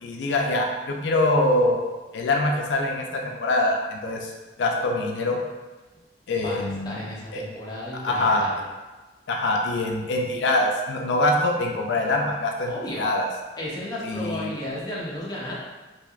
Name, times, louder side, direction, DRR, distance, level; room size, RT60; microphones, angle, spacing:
voice 1, 0.0-1.8 2.1-4.3 4.6-5.4 6.3-7.0 7.3-7.4 8.0-8.4 9.3-13.3 14.0-14.5, left 2 dB, 90° left, 1 dB, 0.4 m, -24 dB
voice 2, 6.4-8.6 12.7-13.1 13.6-15.5, left 1 dB, 25° left, -6 dB, 0.6 m, -33 dB
3.1 x 2.6 x 2.3 m, 1.2 s
head